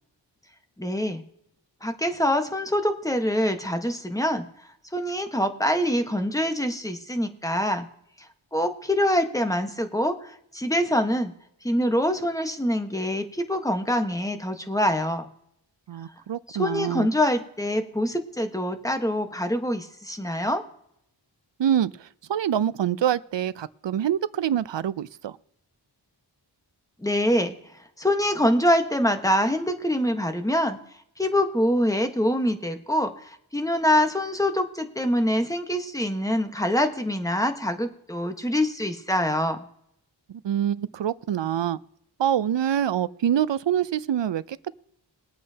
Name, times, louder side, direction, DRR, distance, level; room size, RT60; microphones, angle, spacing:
voice 1, 0.8-1.2 1.8-4.5 4.9-7.9 8.2-11.3 11.6-15.3 16.5-20.6 27.0-30.8 31.2-39.6, equal, 5° left, 6 dB, 1.2 m, -25 dB
voice 2, 15.9-17.1 21.6-25.4 40.3-41.8 42.2-44.7, right 10 dB, 75° right, 17 dB, 0.6 m, -26 dB
22.0 x 8.5 x 2.8 m, 0.73 s
wide cardioid pair, 50°, 45 cm